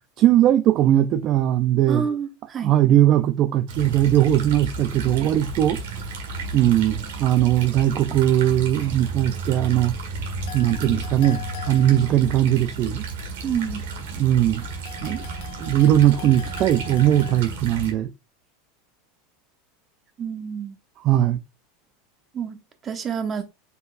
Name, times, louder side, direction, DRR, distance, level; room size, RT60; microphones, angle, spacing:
voice 1, 0.2-2.1 2.6-5.8 6.5-10.0 10.5-13.0 14.2-14.7 15.0-15.2 15.6-18.1 21.0-21.4, right 12 dB, 45° right, 0.4 m, -19 dB
voice 2, 1.9-2.7 13.4-13.9 20.2-20.8 22.3-23.4, right 7 dB, 30° right, 1.1 m, -28 dB
sound 1, 3.7-17.9, right 3 dB, 80° right, 1.7 m, -33 dB
sound 2, 10.5-12.5 14.6-17.4, left 12 dB, 70° left, 1.0 m, -41 dB
5.4 x 3.9 x 2.5 m
hypercardioid pair, 105°, 0 cm